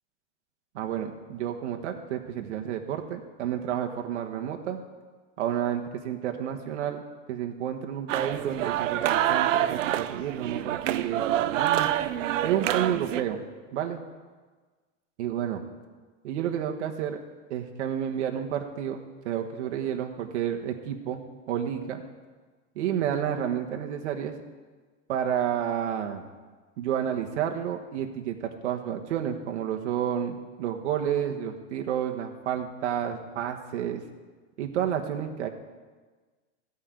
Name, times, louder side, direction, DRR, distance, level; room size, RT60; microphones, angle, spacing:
voice 1, 0.7-4.8 5.4-7.0 7.3-11.9 12.4-13.4 13.7-14.0 15.2-15.6 16.2-17.2 17.5-21.2 21.5-22.0 22.7-24.3 25.1-26.2 26.8-34.0 34.6-35.5, right 9 dB, 65° right, 4 dB, 1.4 m, -30 dB
sound 1, 8.1-13.2, right 12 dB, 90° right, 0.7 m, -27 dB
15.5 x 5.6 x 9.0 m, 1.4 s
supercardioid pair, 180°, 37 cm